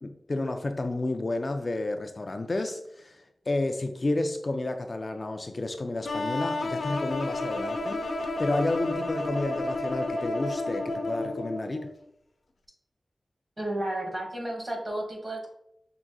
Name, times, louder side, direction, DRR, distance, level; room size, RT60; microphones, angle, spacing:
voice 1, 0.0-8.0 8.4-11.9, left 2 dB, 40° left, 6 dB, 0.4 m, -31 dB
sound 1, 6.0-11.9, left 2 dB, 75° left, 0.8 m, -31 dB
voice 2, 13.6-15.5, right 1 dB, 35° right, 0 dB, 1.4 m, -32 dB
5.9 x 3.8 x 2.2 m, 0.78 s
wide cardioid pair, 115°, 0 cm